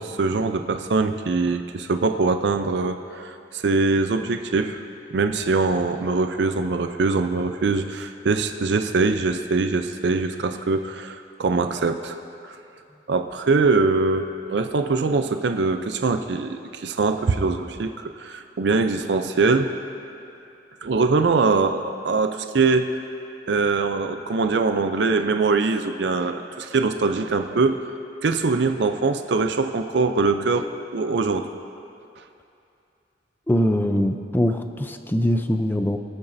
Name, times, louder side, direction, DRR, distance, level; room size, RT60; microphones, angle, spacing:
voice 1, 0.0-4.8 5.1-12.2 12.4-12.5 13.1-19.7 20.8-22.9 23.5-27.8 28.2-31.5, right 4 dB, 70° right, 7 dB, 0.5 m, -22 dB
voice 2, 33.5-36.0, equal, 10° left, 7 dB, 0.5 m, -22 dB
23.5 x 8.8 x 2.7 m, 2.6 s
head